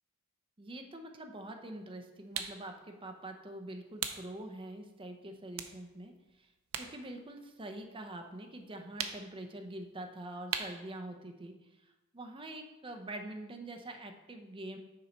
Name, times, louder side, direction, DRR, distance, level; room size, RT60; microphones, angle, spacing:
voice 1, 0.6-6.5 6.8-14.8, right 1 dB, 25° right, 5 dB, 0.7 m, -45 dB
sound 1, 2.3-2.6 4.0-4.3 4.8-4.9 5.5-7.0 7.3-8.3 9.0-9.4 10.5-10.9, right 8 dB, 70° right, 0.6 m, -38 dB
6.8 x 5.4 x 4.4 m, 1.1 s
head